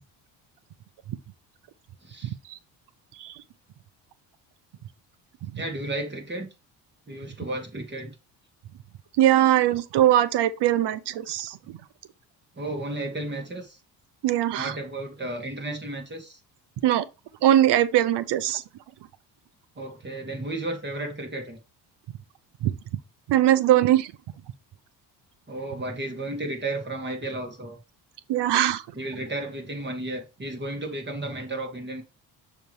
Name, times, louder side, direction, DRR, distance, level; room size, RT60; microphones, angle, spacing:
voice 1, 2.0-2.3 5.6-6.5 7.1-8.2 12.5-13.8 14.5-16.4 19.8-21.6 25.5-27.8 28.9-32.0, right 2 dB, 25° right, 2.3 m, -33 dB
voice 2, 9.2-11.8 14.2-14.7 16.8-17.0 17.4-18.6 22.6-22.7 23.3-24.1 28.3-28.8, right 12 dB, 65° right, 0.8 m, -21 dB
6.6 x 3.2 x 4.7 m
supercardioid pair, 70°, 45 cm